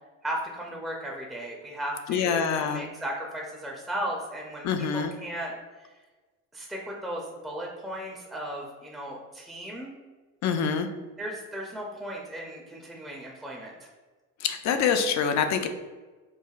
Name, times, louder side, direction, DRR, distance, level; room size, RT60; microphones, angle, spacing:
voice 1, 0.2-4.7 4.9-5.5 6.5-9.9 11.2-13.9, right 1 dB, ahead, -2 dB, 0.5 m, -36 dB
voice 2, 2.1-2.8 4.6-5.1 10.4-10.9 14.4-15.7, left 6 dB, 50° left, 7 dB, 0.5 m, -25 dB
4.7 x 2.4 x 2.4 m, 1.3 s
supercardioid pair, 90°, 37 cm